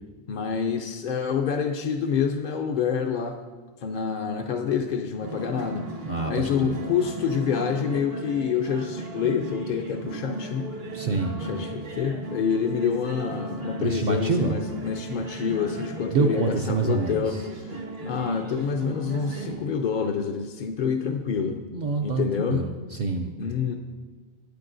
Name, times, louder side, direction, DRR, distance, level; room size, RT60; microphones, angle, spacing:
voice 1, 0.3-3.4 3.8-5.9 6.3-10.7 11.4-17.8 18.0-21.6 22.0-22.7 23.4-23.8, left 6 dB, 60° left, 3 dB, 0.6 m, -27 dB
sound 1, 5.2-19.6, right 2 dB, 70° right, 1.6 m, -36 dB
voice 2, 6.1-6.8 10.9-11.4 13.8-14.6 16.1-17.4 21.7-23.3, right 4 dB, 55° right, 2 dB, 0.6 m, -26 dB
10.5 x 9.0 x 2.6 m, 1.4 s
omnidirectional pair, 1.0 m